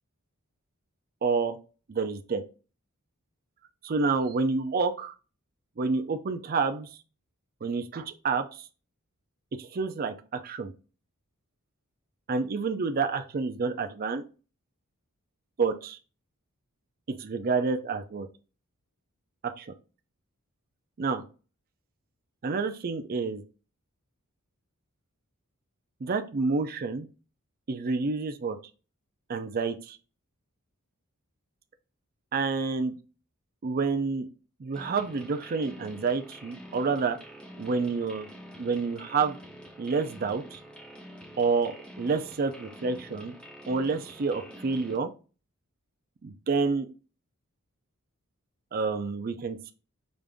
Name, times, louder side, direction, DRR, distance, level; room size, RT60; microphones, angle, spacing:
voice 1, 1.2-1.6 1.9-2.4 3.8-5.1 5.8-6.9 7.6-8.7 9.6-10.7 12.3-14.2 15.6-16.0 17.1-18.3 19.4-19.7 21.0-21.2 22.4-23.4 26.0-27.1 27.7-28.6 29.3-30.0 32.3-32.9 33.6-34.3 34.6-37.2 37.6-38.3 38.6-39.4 39.8-40.6 41.4-43.3 43.7-45.1 46.2-46.9 48.7-49.7, right 4 dB, 45° right, 7 dB, 0.5 m, -28 dB
sound 1, 34.7-45.0, equal, 5° left, 0.6 m, -47 dB
5.1 x 2.6 x 3.4 m, 0.35 s
head